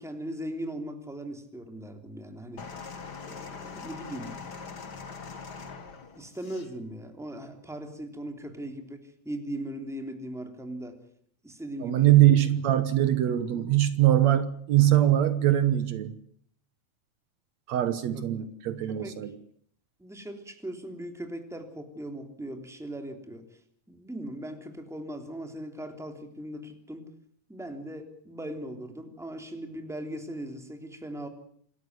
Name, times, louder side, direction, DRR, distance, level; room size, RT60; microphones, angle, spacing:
voice 1, 0.0-2.6 3.2-4.4 6.1-9.0 9.2-11.0 11.4-12.1 18.3-18.5 18.9-19.1 20.0-23.4 23.9-27.1 27.5-31.3, right 1 dB, ahead, 5 dB, 2.9 m, -39 dB
sound 1, 2.6-6.7 7.6-7.7, left 5 dB, 40° left, 2.2 m, -42 dB
voice 2, 11.8-16.1 17.7-19.4, right 13 dB, 70° right, 12 dB, 2.3 m, -22 dB
27.0 x 13.5 x 9.4 m, 0.62 s
omnidirectional pair, 3.3 m